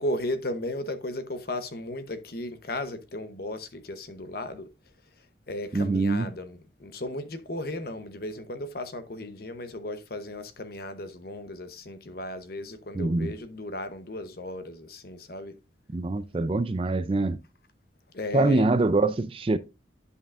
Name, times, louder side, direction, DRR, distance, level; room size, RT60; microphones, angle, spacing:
voice 1, 0.0-4.7 5.5-15.6 18.1-18.6, left 1 dB, 55° left, 0.9 m, -35 dB
voice 2, 5.7-6.3 12.9-13.3 15.9-17.4 18.3-19.6, right 2 dB, 30° right, 0.4 m, -24 dB
11.0 x 5.5 x 2.5 m
head